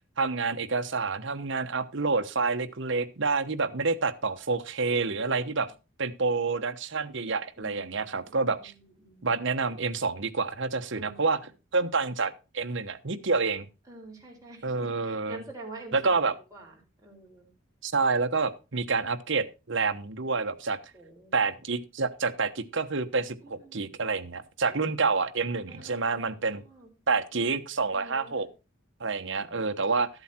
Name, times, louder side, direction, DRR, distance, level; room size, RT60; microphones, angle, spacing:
voice 1, 0.2-5.7 6.0-8.7 9.2-11.4 11.7-13.7 14.6-15.4 15.9-16.3 17.8-20.8 21.3-26.6 27.1-28.5 29.0-30.1, right 4 dB, 60° right, 7 dB, 1.1 m, -28 dB
voice 2, 5.1-5.7 7.6-9.3 10.9-11.5 13.8-17.5 20.9-21.4 23.4-23.8 24.6-25.1 25.7-26.9 27.9-28.5, right 2 dB, 15° right, -2 dB, 4.8 m, -48 dB
13.5 x 8.0 x 4.4 m, 0.30 s
head